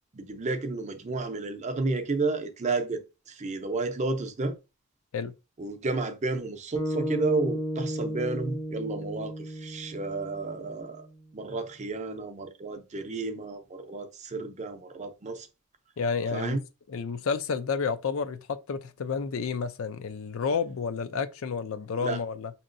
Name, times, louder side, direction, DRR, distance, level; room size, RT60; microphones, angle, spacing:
voice 1, 0.1-4.6 5.6-11.1 11.3-15.5 16.3-16.6 21.9-22.2, right 3 dB, 35° right, 0.6 m, -32 dB
sound 1, 6.7-11.1, equal, 10° left, 0.6 m, -34 dB
voice 2, 16.0-16.6 16.9-22.5, left 5 dB, 65° left, 0.4 m, -30 dB
5.3 x 2.9 x 2.5 m
head